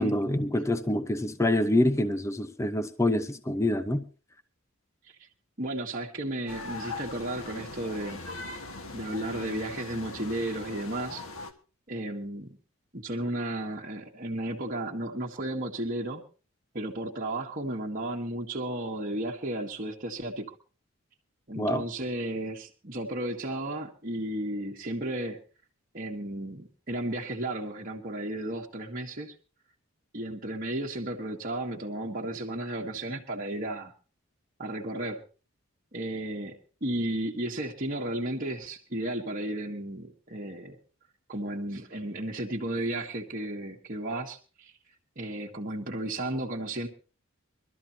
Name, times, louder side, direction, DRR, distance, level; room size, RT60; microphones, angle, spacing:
voice 1, 0.0-4.1 21.6-21.8, left 1 dB, 15° left, 0.8 m, -26 dB
voice 2, 5.6-8.2 8.9-11.2 11.9-12.6 12.9-16.2 16.7-20.5 21.5-25.4 25.9-29.3 30.1-33.9 34.6-35.2 35.9-40.8 41.3-44.7 45.2-46.9, right 1 dB, 40° right, 1.5 m, -34 dB
sound 1, 6.5-11.5, left 3 dB, 70° left, 1.6 m, -40 dB
23.5 x 13.0 x 2.9 m
head